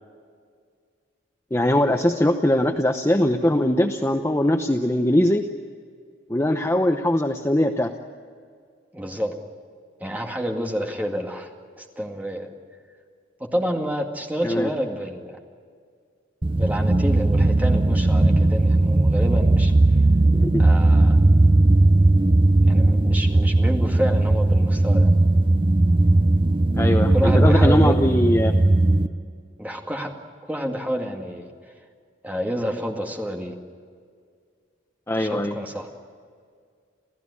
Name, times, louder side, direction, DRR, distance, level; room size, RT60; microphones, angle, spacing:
voice 1, 1.5-5.5 6.3-7.9 14.4-14.7 20.3-20.6 26.7-28.5 35.1-35.6, left 1 dB, 15° left, 5 dB, 0.8 m, -21 dB
voice 2, 8.9-9.4 10.0-11.5 11.8-12.5 13.4-15.4 16.5-19.7 20.6-21.2 22.7-25.1 27.1-27.9 29.6-30.1 30.5-31.5 32.2-33.5 35.1-35.9, equal, 10° right, 1 dB, 2.1 m, -28 dB
sound 1, 16.4-29.1, right 2 dB, 25° right, 0.7 m, -17 dB
28.5 x 16.0 x 9.8 m, 2.1 s
head